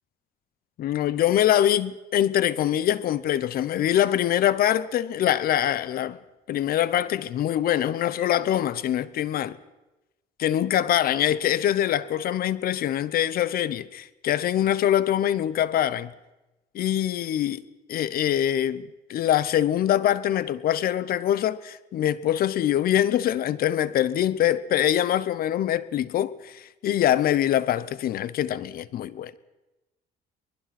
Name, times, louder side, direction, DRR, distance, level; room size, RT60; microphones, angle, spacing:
voice 1, 0.8-6.2 6.5-9.6 10.4-16.1 16.7-17.6 17.9-29.3, left 11 dB, 60° left, 0.9 m, -24 dB
23.5 x 21.0 x 6.0 m
cardioid pair, 110°, 17 cm